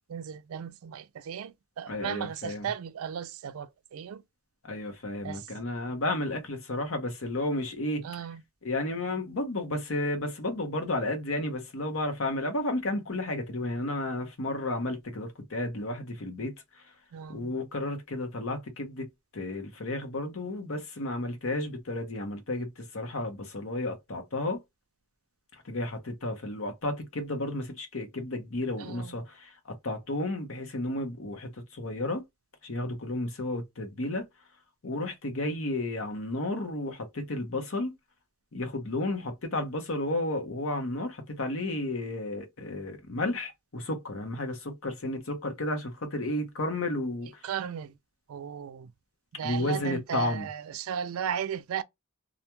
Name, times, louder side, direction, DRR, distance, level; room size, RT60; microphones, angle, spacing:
voice 1, 0.1-4.2 5.2-5.5 8.0-8.4 17.1-17.5 28.8-29.2 47.4-47.9 48.3-48.9 49.4-51.8, right 8 dB, 85° right, 0.4 m, -36 dB
voice 2, 1.9-2.7 4.6-8.1 8.6-16.8 17.3-19.1 19.3-24.6 25.6-32.2 32.6-34.3 34.8-37.9 38.5-47.4 49.4-50.5, left 2 dB, 70° left, 0.9 m, -32 dB
2.4 x 2.3 x 2.9 m
head